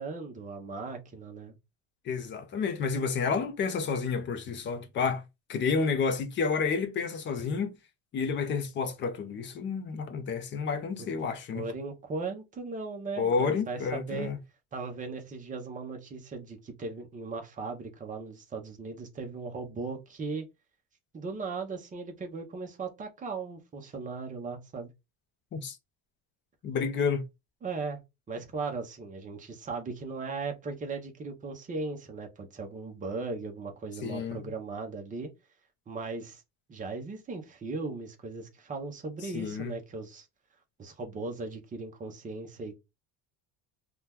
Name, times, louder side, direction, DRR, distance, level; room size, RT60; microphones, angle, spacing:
voice 1, 0.0-1.5 11.5-14.3 14.7-20.4 21.1-24.9 27.6-28.0 28.3-35.3 35.9-36.4 36.7-40.3 40.8-42.8, right 4 dB, 20° right, 0.7 m, -37 dB
voice 2, 2.1-5.2 5.5-7.8 8.1-11.7 13.2-14.4 25.5-25.8 26.6-27.2 34.0-34.4 39.3-39.7, left 5 dB, 30° left, 0.5 m, -30 dB
2.8 x 2.3 x 3.4 m
cardioid pair, 160°, 41 cm